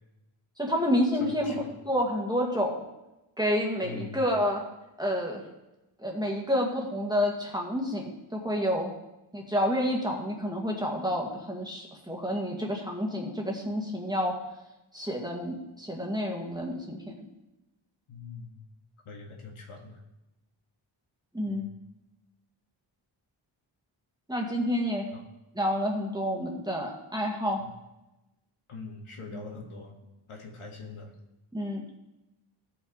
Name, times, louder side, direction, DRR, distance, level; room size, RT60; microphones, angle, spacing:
voice 1, 0.6-2.8 3.4-4.6 5.0-5.4 6.0-8.9 9.3-14.3 14.9-17.1 21.3-21.7 24.3-25.1 25.5-27.6 29.3-29.4 31.5-32.0, equal, 10° right, -1 dB, 1.9 m, -29 dB
voice 2, 1.2-1.7 3.8-4.2 18.1-18.6 19.1-20.0 21.5-21.7 25.1-25.2 27.6-27.7 28.7-29.9 30.3-31.1, left 4 dB, 85° left, 0 dB, 1.8 m, -43 dB
16.0 x 5.7 x 4.1 m, 0.95 s
wide cardioid pair, 110°, 49 cm